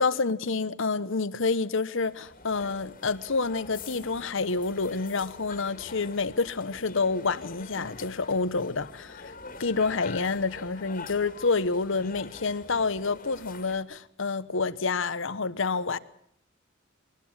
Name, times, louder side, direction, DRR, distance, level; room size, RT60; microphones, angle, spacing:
voice 1, 0.0-9.3 9.6-16.0, left 4 dB, 65° left, 1.0 m, -28 dB
sound 1, 2.0-13.8, left 4 dB, 45° left, 2.1 m, -45 dB
23.0 x 19.5 x 7.3 m
head